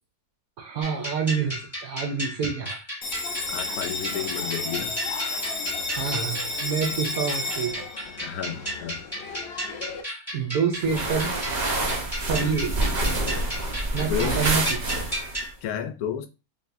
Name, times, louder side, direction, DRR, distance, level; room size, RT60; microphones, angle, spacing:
voice 1, 0.6-2.8 5.9-7.9 10.3-11.4 12.2-12.7 13.9-15.0, right 6 dB, 70° right, 1.0 m, -27 dB
sound 1, 0.8-15.5, equal, 10° left, 1.5 m, -34 dB
Bell, 3.0-10.0, left 3 dB, 55° left, 0.7 m, -32 dB
voice 2, 3.5-4.9 8.2-9.1 12.3-12.6 14.0-14.4 15.6-16.3, left 9 dB, 75° left, 1.0 m, -32 dB
sound 2, 10.8-15.5, right 2 dB, 40° right, 0.6 m, -27 dB
5.0 x 2.6 x 2.5 m
omnidirectional pair, 1.6 m